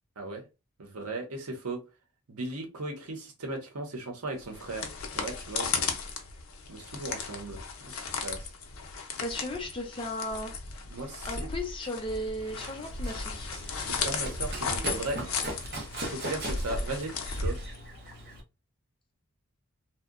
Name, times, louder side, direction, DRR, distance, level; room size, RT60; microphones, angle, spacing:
voice 1, 0.8-1.8 2.3-5.9 6.7-8.0 8.2-8.5 10.9-11.5 13.7-15.2 16.1-17.6, right 2 dB, 90° right, 0.8 m, -37 dB
sound 1, 4.4-18.1, left 4 dB, 75° left, 0.5 m, -35 dB
voice 2, 9.2-10.5 11.3-13.5, left 1 dB, 25° left, 0.5 m, -35 dB
Run, 12.4-18.4, right 1 dB, 50° right, 0.6 m, -40 dB
2.7 x 2.1 x 2.4 m
head